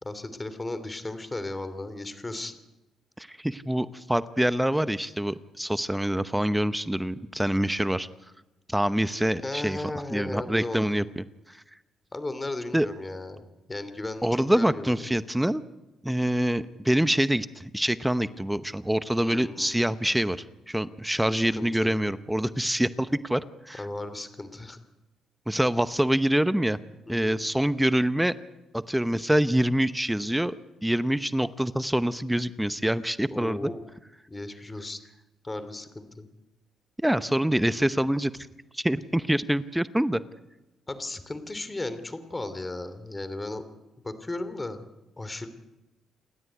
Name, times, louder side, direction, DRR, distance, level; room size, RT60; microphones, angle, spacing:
voice 1, 0.0-2.6 9.4-11.0 12.1-13.4 13.7-15.0 19.1-19.7 21.3-22.0 23.8-24.8 27.1-27.4 33.3-33.8 34.3-35.0 35.4-36.3 40.9-43.6 44.0-44.8 45.2-45.5, left 2 dB, 20° left, 12 dB, 3.0 m, -35 dB
voice 2, 3.2-8.1 8.7-9.8 10.1-11.6 12.7-12.9 14.2-15.6 16.0-23.4 23.7-23.8 25.5-26.8 27.1-28.3 28.7-30.6 30.8-33.7 37.0-38.3 38.7-40.2, right 1 dB, 5° right, 14 dB, 0.9 m, -25 dB
28.5 x 12.5 x 9.4 m, 1.0 s
cardioid pair, 90°, 0 cm